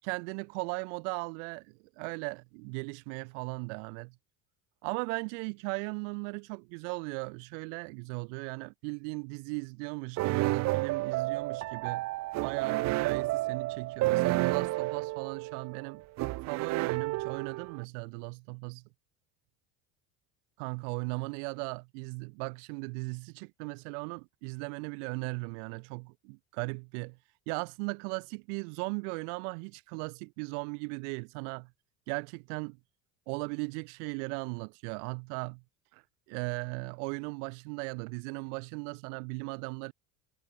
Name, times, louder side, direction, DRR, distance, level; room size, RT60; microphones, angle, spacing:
voice 1, 0.0-4.1 4.8-12.1 12.3-16.0 16.5-18.8 20.6-27.2 27.5-31.7 32.1-32.8 33.3-35.6 35.9-36.0 36.3-39.9, right 38 dB, 85° right, 5.7 m, -37 dB
sound 1, 10.2-17.8, right 19 dB, 50° right, 1.7 m, -31 dB
cardioid pair, 170°, 36 cm